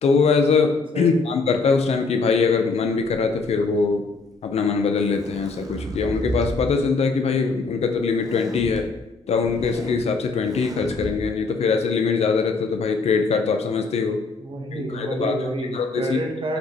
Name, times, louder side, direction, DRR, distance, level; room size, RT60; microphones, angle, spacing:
voice 1, 0.0-4.0 4.4-8.9 9.3-14.2 14.7-15.3 15.7-16.2, left 5 dB, 75° left, 5 dB, 0.5 m, -22 dB
sound 1, 3.0-3.8 4.7-6.6 8.2-8.8 9.3-10.0 10.4-11.1, right 2 dB, 35° right, 0.8 m, -33 dB
voice 2, 14.4-16.6, right 1 dB, 55° right, 1 dB, 1.0 m, -28 dB
4.4 x 3.0 x 4.0 m, 0.94 s
cardioid pair, 60°, 11 cm